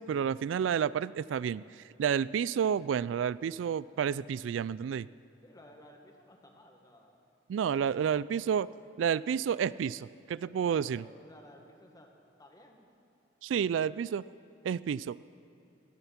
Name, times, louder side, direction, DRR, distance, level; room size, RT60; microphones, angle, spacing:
voice 1, 0.0-5.1 7.5-8.7 9.0-11.0 13.4-14.2 14.6-15.2, right 8 dB, 80° right, 19 dB, 0.3 m, -30 dB
voice 2, 5.4-7.3 10.5-12.1 12.4-12.9 13.5-14.1, left 1 dB, 20° left, 2 dB, 1.8 m, -56 dB
17.5 x 14.0 x 5.9 m, 2.9 s
head